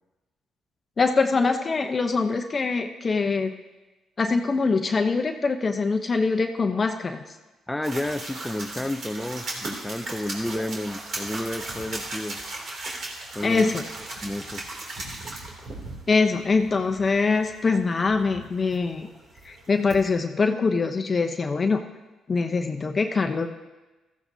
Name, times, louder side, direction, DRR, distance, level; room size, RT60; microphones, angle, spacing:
voice 1, 1.0-3.5 4.2-7.2 13.4-13.8 16.1-19.1 19.4-21.8 22.3-23.5, left 4 dB, 35° left, 6 dB, 0.8 m, -23 dB
voice 2, 7.7-12.4 13.3-13.8 14.2-14.6, left 1 dB, 10° left, 10 dB, 0.5 m, -31 dB
sound 1, 7.8-20.2, right 2 dB, 60° right, 2.8 m, -37 dB
14.5 x 14.5 x 2.8 m, 1.1 s
cardioid pair, 90°, 0 cm